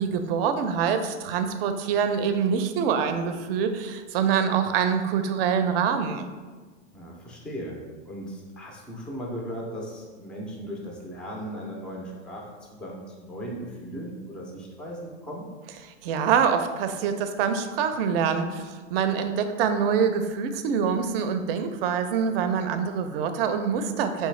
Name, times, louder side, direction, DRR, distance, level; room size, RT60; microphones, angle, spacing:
voice 1, 0.0-6.3 16.0-24.3, right 7 dB, 55° right, 8 dB, 0.5 m, -25 dB
voice 2, 6.9-12.5 12.8-15.5, equal, 5° left, -2 dB, 0.3 m, -37 dB
4.7 x 3.3 x 3.2 m, 1.4 s
hypercardioid pair, 130°, 37 cm